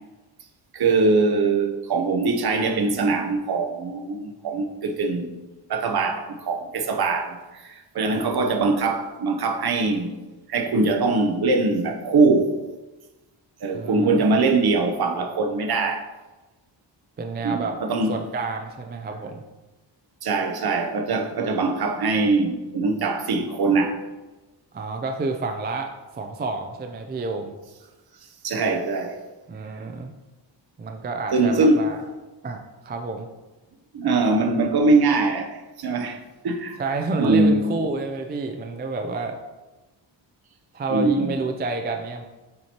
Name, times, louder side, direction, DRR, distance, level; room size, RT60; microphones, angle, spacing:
voice 1, 0.7-5.3 5.7-10.2 10.5-12.5 13.6-16.1 17.4-18.2 20.2-24.0 28.4-29.2 31.3-31.8 33.9-36.2 36.4-36.8 37.2-37.6 40.9-41.4, right 3 dB, 55° right, 0.7 m, -22 dB
voice 2, 8.0-8.3 13.7-14.3 17.2-17.8 18.1-19.4 24.7-27.5 29.5-30.1 30.8-32.0 32.4-33.3 36.8-39.4 40.7-42.2, right 3 dB, 25° right, 0.3 m, -29 dB
7.5 x 4.3 x 2.8 m
wide cardioid pair, 155°, 46 cm